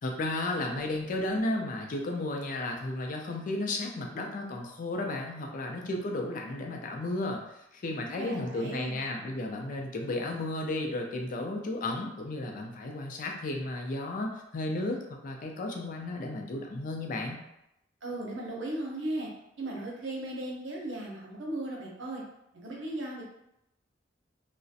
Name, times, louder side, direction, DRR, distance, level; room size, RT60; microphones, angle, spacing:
voice 1, 0.0-17.4, left 2 dB, 45° left, 2 dB, 0.4 m, -33 dB
voice 2, 8.2-9.0 18.0-19.3 19.6-22.2 22.5-23.2, right 1 dB, 85° right, -2 dB, 0.7 m, -36 dB
2.4 x 2.0 x 2.6 m, 0.83 s
head